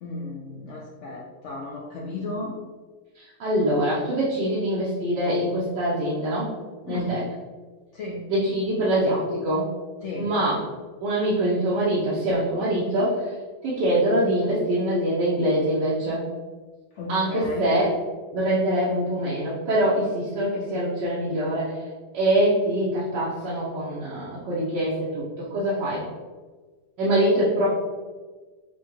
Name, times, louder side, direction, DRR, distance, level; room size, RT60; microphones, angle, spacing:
voice 1, 0.0-2.5 6.9-7.2 7.9-8.2 10.0-10.3 16.9-17.7, left 2 dB, 80° left, -2 dB, 0.6 m, -34 dB
voice 2, 3.2-6.5 6.8-7.2 8.3-9.7 10.1-10.5 11.0-13.2 13.6-16.2 17.1-17.9 18.3-21.8 22.1-26.0 27.0-27.8, right 1 dB, 85° right, -8 dB, 1.5 m, -24 dB
6.0 x 2.2 x 3.0 m, 1.4 s
omnidirectional pair, 1.8 m